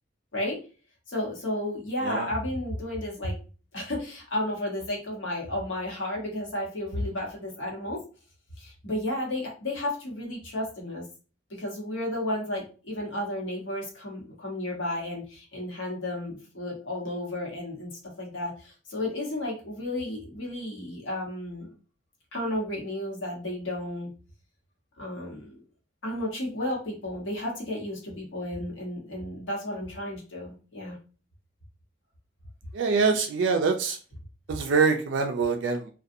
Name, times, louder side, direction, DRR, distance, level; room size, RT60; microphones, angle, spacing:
voice 1, 1.1-3.3 3.7-8.0 8.6-11.0 11.5-21.7 22.3-24.1 25.0-25.6 26.0-31.0, left 1 dB, 80° left, -2 dB, 1.0 m, -33 dB
voice 2, 32.7-34.0 34.5-35.9, right 4 dB, 70° right, 4 dB, 0.3 m, -24 dB
2.6 x 2.3 x 2.5 m, 0.36 s
head